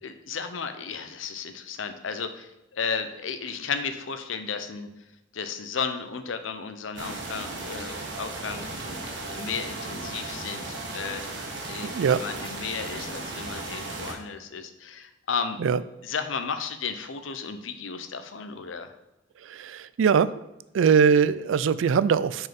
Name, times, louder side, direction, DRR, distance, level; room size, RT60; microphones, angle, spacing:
voice 1, 0.0-4.9 5.3-8.6 9.3-11.2 11.7-15.6 16.0-18.9, left 6 dB, 90° left, 9 dB, 0.7 m, -34 dB
sound 1, 7.0-14.1, right 2 dB, 65° right, 1.4 m, -36 dB
voice 2, 11.9-12.2 15.6-15.8 19.5-20.3 20.7-22.5, right 6 dB, 85° right, 16 dB, 0.3 m, -21 dB
6.4 x 4.6 x 5.2 m, 0.96 s
head